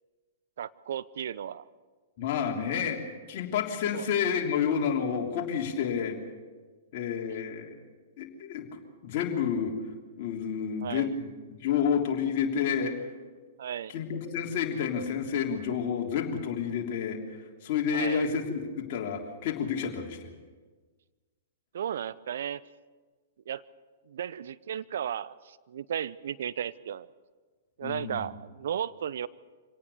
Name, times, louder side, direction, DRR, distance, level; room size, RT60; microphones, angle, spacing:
voice 1, 0.6-1.6 3.9-4.1 10.8-11.1 13.6-13.9 17.9-18.3 21.7-22.6 23.5-23.6 24.1-27.1 27.8-29.3, right 9 dB, 65° right, 18 dB, 0.6 m, -34 dB
voice 2, 2.2-3.0 3.3-6.2 6.9-7.8 8.2-9.7 10.2-13.0 13.9-20.3 27.8-28.2, left 7 dB, 50° left, 1 dB, 3.3 m, -30 dB
25.5 x 18.0 x 6.8 m, 1.4 s
figure-of-eight pair, 110°, 0 cm